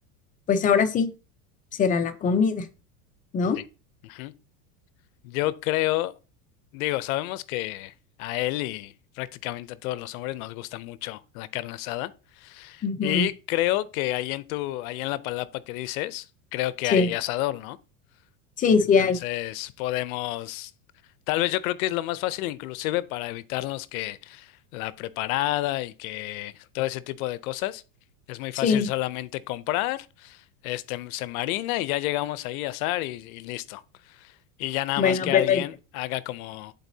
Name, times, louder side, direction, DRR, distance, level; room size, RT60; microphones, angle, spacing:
voice 1, 0.5-1.1 1.8-2.7 3.3-3.6 12.8-13.3 16.9-17.1 18.6-19.2 28.6-28.9 35.0-35.6, left 5 dB, 20° left, 0.5 m, -21 dB
voice 2, 5.2-6.1 6.7-7.9 8.2-12.1 12.4-16.3 16.5-17.8 19.0-20.7 21.3-27.8 28.3-33.8 34.1-34.3 34.6-36.7, left 16 dB, 65° left, 0.6 m, -30 dB
11.0 x 4.1 x 2.7 m
supercardioid pair, 140°, 45 cm